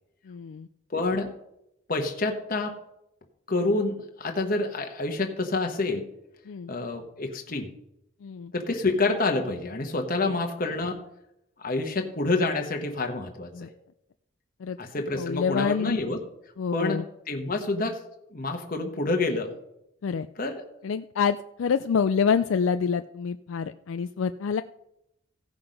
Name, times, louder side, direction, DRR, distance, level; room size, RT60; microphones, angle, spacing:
voice 1, 0.3-0.7 6.5-6.7 8.2-8.5 13.5-13.7 14.6-14.8 15.2-16.0 16.6-17.1 20.0-20.3 20.8-24.6, left 6 dB, 70° left, 10 dB, 0.4 m, -27 dB
voice 2, 0.9-1.3 1.9-2.7 3.5-6.1 6.7-7.7 8.5-11.0 11.6-13.7 14.8-16.2 16.7-17.0 17.3-18.0 18.3-19.5 20.4-20.6, left 2 dB, 45° left, 4 dB, 1.1 m, -28 dB
16.0 x 5.9 x 5.1 m, 0.82 s
head